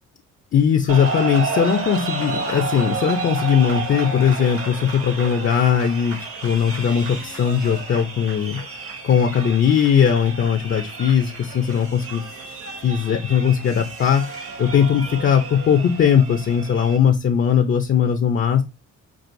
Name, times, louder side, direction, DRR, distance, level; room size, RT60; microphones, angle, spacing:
voice 1, 0.5-12.2 12.8-18.6, left 8 dB, 45° left, 5 dB, 0.6 m, -19 dB
sound 1, 0.9-17.0, right 4 dB, 50° right, 1.2 m, -31 dB
6.1 x 2.5 x 2.6 m, 0.26 s
cardioid pair, 90°, 30 cm